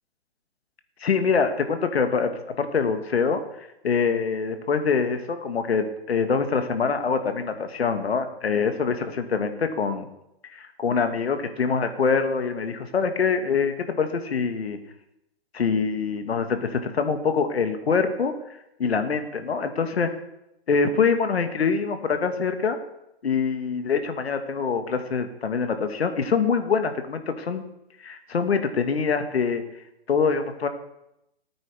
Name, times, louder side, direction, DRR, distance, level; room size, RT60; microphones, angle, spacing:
voice 1, 1.0-2.3 2.6-10.1 10.5-14.8 15.5-18.3 18.8-20.1 20.7-22.8 23.2-27.6 28.0-29.6 30.1-30.7, left 5 dB, 75° left, 8 dB, 1.6 m, -24 dB
17.5 x 9.0 x 3.5 m, 0.85 s
hypercardioid pair, 130°, 31 cm